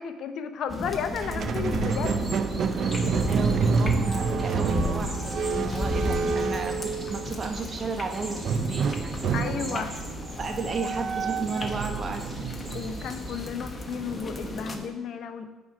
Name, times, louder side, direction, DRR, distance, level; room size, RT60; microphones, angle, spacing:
voice 1, 0.0-2.2 9.3-9.9 12.7-15.5, left 7 dB, 65° left, 9 dB, 0.6 m, -33 dB
sound 1, 0.7-14.8, left 2 dB, 30° left, 0.9 m, -34 dB
Squeak, 1.1-7.5 8.4-13.6, right 5 dB, 55° right, 0.5 m, -29 dB
sound 2, 1.9-14.9, right 1 dB, 20° right, 2.4 m, -40 dB
voice 2, 3.3-10.0 10.4-12.4, right 4 dB, 35° right, 5 dB, 1.1 m, -33 dB
8.6 x 4.5 x 5.8 m, 1.2 s
cardioid pair, 100°, 0 cm